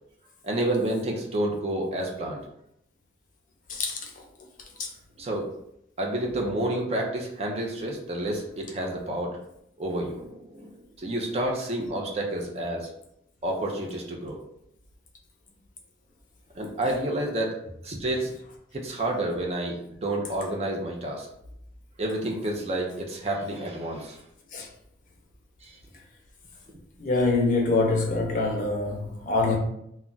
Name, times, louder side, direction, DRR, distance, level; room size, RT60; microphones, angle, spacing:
voice 1, 0.4-2.4 5.2-5.5 6.0-9.4 9.8-12.9 13.4-14.4 16.5-17.6 17.8-18.3 18.7-21.3 22.0-24.2 25.6-25.8, right 1 dB, 35° right, 0.4 m, -29 dB
voice 2, 3.7-4.1 24.5-24.7 27.0-29.6, left 3 dB, 45° left, 0.5 m, -25 dB
2.3 x 2.1 x 3.8 m
head